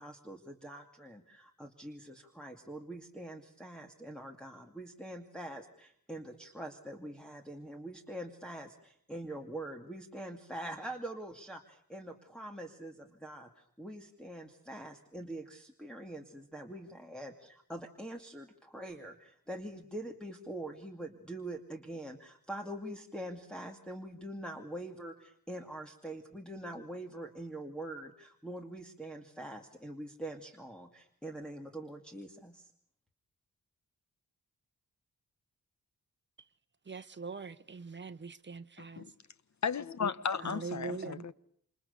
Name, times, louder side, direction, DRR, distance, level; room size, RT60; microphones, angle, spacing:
voice 1, 0.0-32.7, right 1 dB, 5° left, 2.4 m, -44 dB
voice 2, 36.8-39.0 40.4-41.2, right 4 dB, 35° right, 1.2 m, -42 dB
voice 3, 39.6-41.3, left 6 dB, 60° left, 1.2 m, -34 dB
28.5 x 28.0 x 6.9 m
wide cardioid pair, 150°, 32 cm